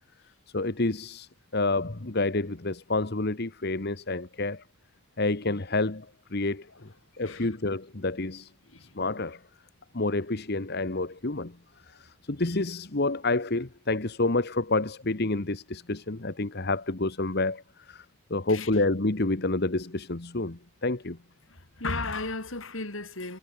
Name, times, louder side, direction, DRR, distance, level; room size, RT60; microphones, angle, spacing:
voice 1, 0.5-4.6 5.2-6.1 6.3-6.9 7.1-8.5 8.8-9.4 9.9-11.5 11.9-18.0 18.3-21.2, left 2 dB, 50° left, 1.3 m, -29 dB
voice 2, 21.5-23.4, left 3 dB, 65° left, 4.1 m, -34 dB
head